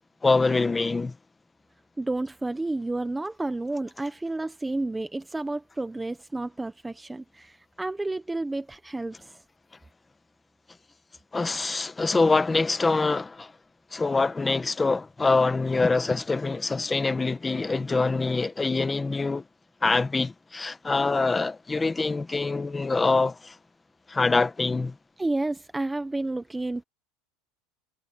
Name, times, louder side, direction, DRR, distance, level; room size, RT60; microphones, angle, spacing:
voice 1, 0.2-1.1 11.3-13.5 13.9-19.4 19.8-23.5 24.1-24.9, left 3 dB, 10° left, 1.1 m, -24 dB
voice 2, 2.0-9.4 25.2-26.8, right 2 dB, 5° right, 0.7 m, -31 dB
cardioid pair, 170°, 0 cm